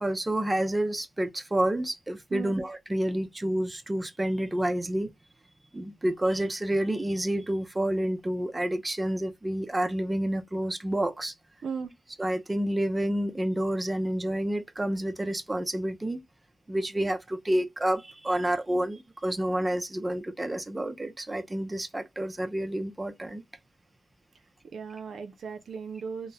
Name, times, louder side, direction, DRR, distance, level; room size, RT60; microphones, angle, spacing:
voice 1, 0.0-5.1 5.7-11.3 12.2-16.2 16.7-23.4, right 1 dB, 15° right, 0.5 m, -29 dB
voice 2, 24.7-26.3, right 6 dB, 70° right, 0.5 m, -36 dB
2.9 x 2.0 x 2.2 m
cardioid pair, 85°, 0 cm